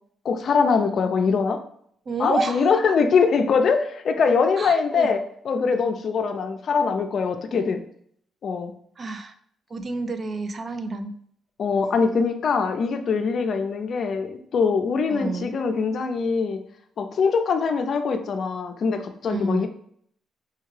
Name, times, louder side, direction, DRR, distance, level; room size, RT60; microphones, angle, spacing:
voice 1, 0.2-1.6 2.2-7.8 8.4-8.7 11.6-16.6 17.0-19.7, left 5 dB, 55° left, 6 dB, 0.5 m, -23 dB
voice 2, 2.1-2.7 4.6-5.1 9.0-9.3 9.7-11.1 15.1-15.5 19.3-19.7, right 3 dB, 40° right, 9 dB, 0.4 m, -29 dB
4.5 x 2.3 x 3.2 m, 0.64 s
cardioid pair, 90°, 0 cm